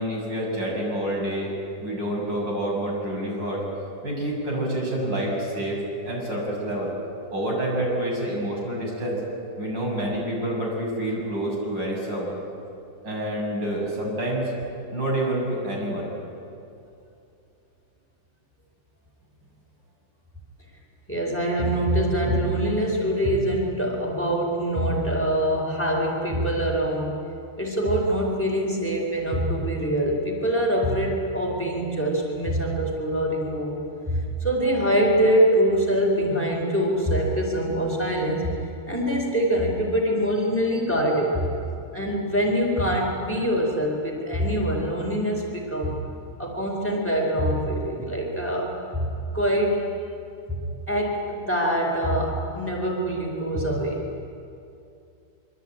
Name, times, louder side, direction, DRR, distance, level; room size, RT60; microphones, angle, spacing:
voice 1, 0.0-1.5 1.8-3.6 4.0-6.9 7.3-9.2 9.6-12.3 13.0-14.5 14.9-16.1, right 1 dB, 70° right, -2 dB, 7.7 m, -28 dB
voice 2, 21.1-27.1 27.6-33.8 34.1-38.5 38.9-41.5 41.9-46.0 46.4-49.8 50.6-54.0, equal, 5° left, -1 dB, 4.3 m, -24 dB
24.5 x 24.5 x 9.1 m, 2.6 s
omnidirectional pair, 2.0 m